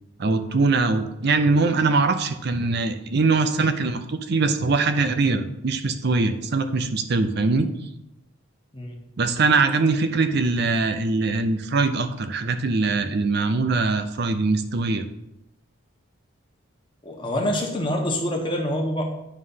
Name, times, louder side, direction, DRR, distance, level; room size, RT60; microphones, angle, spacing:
voice 1, 0.2-7.7 9.2-15.0, right 3 dB, 50° right, 8 dB, 0.5 m, -22 dB
voice 2, 17.0-19.0, left 1 dB, 25° left, 0 dB, 1.1 m, -26 dB
9.4 x 3.2 x 5.6 m, 0.86 s
head